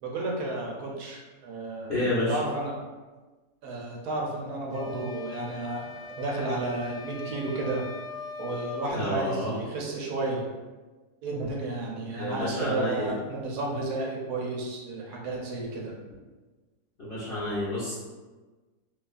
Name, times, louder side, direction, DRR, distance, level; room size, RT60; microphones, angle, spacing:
voice 1, 0.0-2.0 2.3-2.7 3.6-7.8 8.4-10.4 11.2-15.9, right 2 dB, 75° right, -1 dB, 1.1 m, -32 dB
voice 2, 1.9-2.4 8.9-9.5 12.1-13.1 17.0-17.9, left 1 dB, 45° left, -11 dB, 0.8 m, -29 dB
sound 1, 4.7-8.9, left 4 dB, 25° right, 0.6 m, -40 dB
3.0 x 2.3 x 2.4 m, 1.3 s
omnidirectional pair, 1.7 m